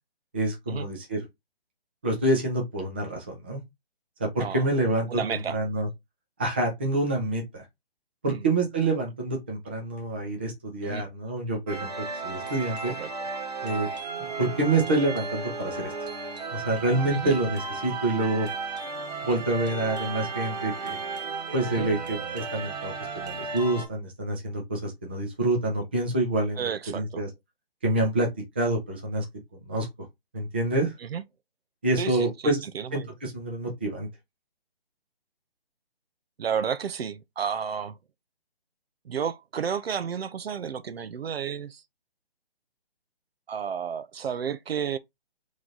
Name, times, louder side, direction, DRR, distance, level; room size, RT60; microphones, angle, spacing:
voice 1, 0.3-1.2 2.0-3.6 4.2-5.9 6.4-7.6 8.2-12.9 13.6-13.9 14.4-15.9 16.5-18.5 19.2-21.0 21.5-26.7 26.9-27.3 27.8-28.3 28.6-29.2 29.7-29.9 30.3-30.9 31.8-32.6 32.9-34.1, right 2 dB, 10° right, 0.5 m, -27 dB
voice 2, 5.1-5.6 8.3-8.4 10.8-11.1 12.8-13.1 17.1-17.4 21.7-21.9 26.6-27.2 31.0-31.2 32.0-33.1 36.4-38.0 39.1-41.8 43.5-45.0, right 7 dB, 75° right, 0.6 m, -32 dB
sound 1, 11.7-23.9, right 4 dB, 40° right, 1.1 m, -34 dB
3.7 x 3.2 x 3.9 m
hypercardioid pair, 160°, 31 cm